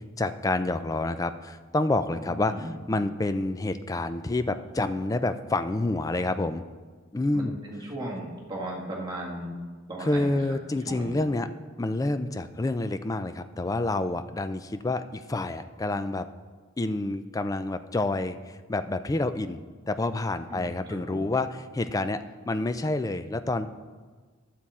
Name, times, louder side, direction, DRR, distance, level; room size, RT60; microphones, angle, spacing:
voice 1, 0.2-6.6 7.1-7.6 10.0-11.5 11.8-16.3 16.8-23.7, left 2 dB, 15° left, 10 dB, 0.3 m, -28 dB
voice 2, 2.2-2.8 7.3-9.6 9.9-10.4 10.8-11.2 20.5-21.3, right 1 dB, 20° right, -4 dB, 1.5 m, -36 dB
12.0 x 7.5 x 4.2 m, 1.5 s
head